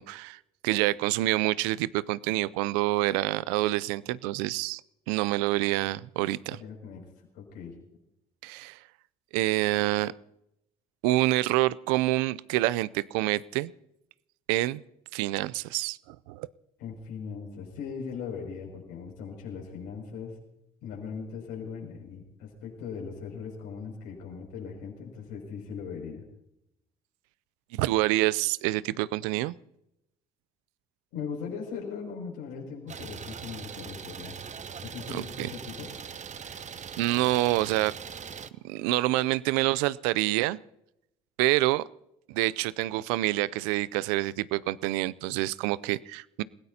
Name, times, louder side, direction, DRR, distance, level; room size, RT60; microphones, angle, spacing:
voice 1, 0.0-4.8 5.1-6.6 8.4-8.8 9.3-10.1 11.0-13.7 14.5-14.8 15.1-16.5 27.7-29.5 35.1-35.5 37.0-37.9 38.6-40.6 41.4-41.8 42.3-46.4, right 18 dB, 85° right, 20 dB, 0.5 m, -27 dB
voice 2, 6.5-7.1 7.3-7.7 16.8-20.4 20.8-26.2 31.1-34.4 34.8-35.9, left 6 dB, 85° left, -1 dB, 6.4 m, -39 dB
Idling, 32.9-38.5, right 7 dB, 40° right, 0.9 m, -41 dB
29.0 x 17.0 x 2.8 m, 0.83 s
hypercardioid pair, 60°, 19 cm